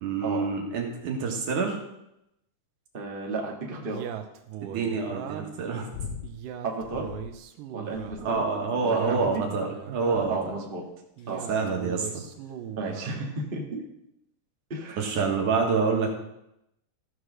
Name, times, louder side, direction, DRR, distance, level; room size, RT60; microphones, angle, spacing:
voice 1, 0.0-1.8 4.6-5.9 8.2-10.4 11.5-12.2 15.0-16.2, right 4 dB, 70° right, 1 dB, 3.1 m, -27 dB
voice 2, 2.9-4.0 6.6-7.1 7.7-8.4 8.8-9.3 9.6-9.7 10.2-10.8 11.3-11.4 12.8-13.8 14.7-15.1, right 3 dB, 30° right, 0 dB, 0.9 m, -33 dB
Male speech man speaking, 3.8-5.7 6.2-8.2 8.8-10.5 11.2-13.2, right 9 dB, 90° right, 2.4 m, -39 dB
sound 1, 5.9-6.4 6.8-7.4 7.9-8.5 9.0-9.5 10.1-10.5 11.2-11.6 12.5-12.6, left 7 dB, 70° left, 1.9 m, -41 dB
14.5 x 4.8 x 6.2 m, 0.83 s
omnidirectional pair, 3.8 m